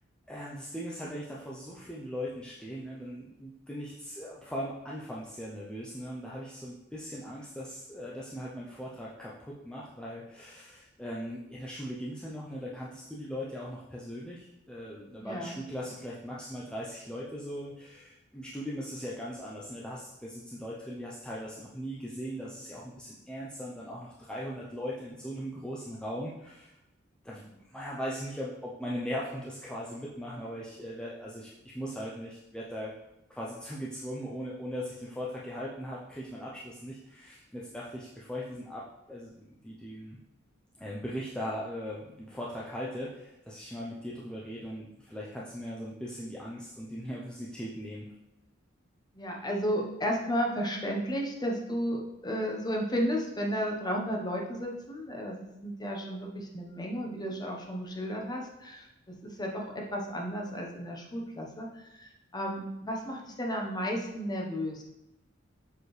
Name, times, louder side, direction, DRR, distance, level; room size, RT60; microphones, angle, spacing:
voice 1, 0.3-26.7 27.2-33.0 33.3-40.2 40.8-48.1, equal, 5° left, -6 dB, 0.5 m, -39 dB
voice 2, 15.2-15.6 49.1-64.8, equal, 20° left, 0 dB, 0.9 m, -33 dB
6.9 x 4.6 x 3.2 m, 0.92 s
head